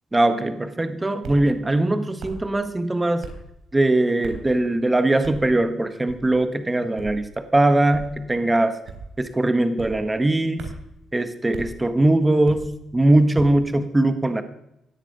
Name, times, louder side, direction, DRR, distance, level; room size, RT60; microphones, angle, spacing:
voice 1, 0.1-3.3 3.7-8.8 9.2-10.7 11.1-14.4, right 2 dB, 15° right, 9 dB, 1.4 m, -21 dB
sound 1, 1.2-1.5 2.2-2.5 3.2-3.5 4.2-4.5 5.2-5.5 6.1-6.4 7.0-7.2 7.9-8.2 8.9-9.2 9.8-10.0 10.6-10.9 11.5-11.7 12.4-12.8 13.4-13.6, right 5 dB, 75° right, 3.8 m, -37 dB
16.5 x 11.5 x 5.6 m, 0.82 s
cardioid pair, 90°, 0 cm